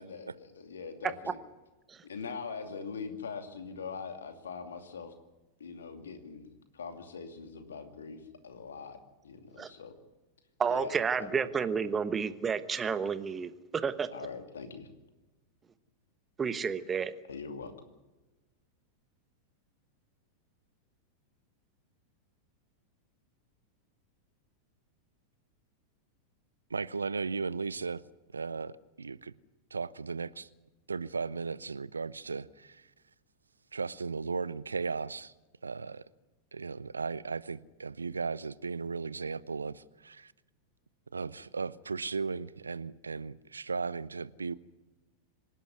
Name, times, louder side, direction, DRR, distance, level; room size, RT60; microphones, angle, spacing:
voice 1, 0.0-1.4 2.0-5.1 5.6-9.0 9.2-9.9 10.7-11.5 14.1-14.9 17.3-17.7, left 5 dB, 65° left, 2.5 m, -42 dB
voice 2, 10.6-14.1 16.4-17.1, right 6 dB, 20° right, 1.1 m, -31 dB
voice 3, 26.7-28.0 28.3-29.3 29.7-30.5 30.9-32.9 33.7-35.3 35.6-36.0 36.5-40.3 41.1-44.6, right 4 dB, 75° right, 0.6 m, -36 dB
26.0 x 11.5 x 9.5 m
figure-of-eight pair, 90°, 0 cm